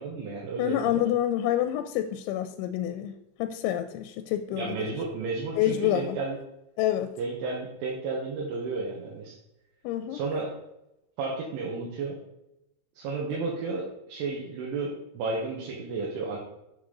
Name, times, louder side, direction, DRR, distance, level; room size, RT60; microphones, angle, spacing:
voice 1, 0.0-1.0 4.5-6.4 7.2-9.4 10.1-10.5 11.2-12.2 13.0-16.4, right 3 dB, 90° right, -3 dB, 3.8 m, -32 dB
voice 2, 0.6-5.0 5.6-6.2 6.8-7.2 9.8-10.2, left 12 dB, 85° left, 8 dB, 2.9 m, -28 dB
8.0 x 7.1 x 3.9 m, 0.89 s
omnidirectional pair, 5.4 m